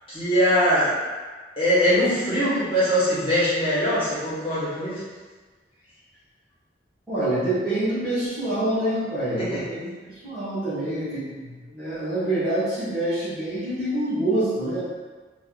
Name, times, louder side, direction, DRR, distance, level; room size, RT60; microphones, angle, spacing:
voice 1, 0.1-0.9 1.6-5.0 9.4-9.6, equal, 30° left, -11 dB, 1.4 m, -22 dB
voice 2, 7.1-14.8, right 1 dB, ahead, -17 dB, 1.2 m, -26 dB
2.8 x 2.6 x 3.8 m, 1.4 s
head